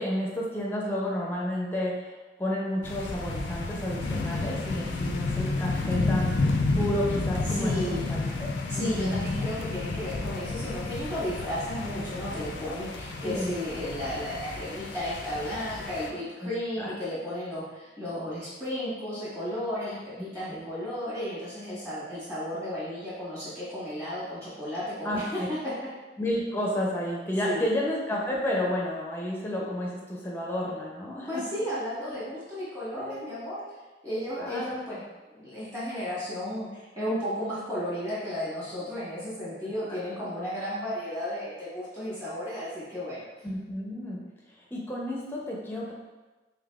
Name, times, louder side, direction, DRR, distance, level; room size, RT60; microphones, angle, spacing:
voice 1, 0.0-9.3 13.2-13.6 16.4-16.5 16.8-16.9 20.2-20.7 25.0-25.5 26.2-31.5 32.1-32.2 32.9-33.2 34.4-34.8 39.9-40.0 43.4-44.2 44.7-45.9, left 1 dB, 10° left, -3 dB, 0.5 m, -31 dB
sound 1, 2.8-16.1, left 3 dB, 75° left, 0.4 m, -31 dB
voice 2, 7.4-8.1 8.7-25.9 27.4-27.6 31.3-33.6 34.0-35.0 35.3-43.3, equal, 20° right, -11 dB, 1.5 m, -34 dB
3.8 x 3.4 x 2.3 m, 1.2 s
head